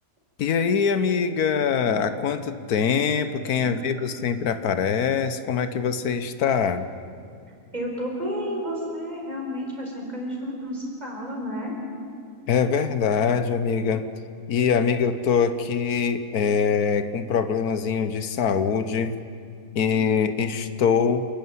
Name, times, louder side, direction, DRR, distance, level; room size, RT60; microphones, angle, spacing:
voice 1, 0.4-6.9 12.5-14.1 14.5-19.1 19.7-21.3, left 6 dB, 85° left, 11 dB, 1.4 m, -23 dB
voice 2, 7.7-11.8, equal, 25° right, -2 dB, 4.8 m, -31 dB
28.0 x 11.0 x 9.4 m, 2.3 s
omnidirectional pair, 1.6 m